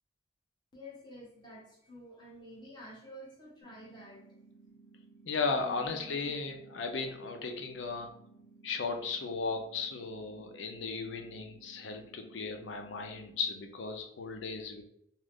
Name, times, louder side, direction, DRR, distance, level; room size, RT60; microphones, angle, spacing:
voice 1, 0.7-4.2 5.6-6.1, equal, 25° left, -4 dB, 0.8 m, -50 dB
sound 1, 3.6-13.6, right 3 dB, 50° left, 0.8 m, -58 dB
voice 2, 5.3-8.1 8.6-14.8, left 4 dB, 80° left, 4 dB, 0.5 m, -36 dB
2.4 x 2.4 x 3.4 m, 0.73 s
head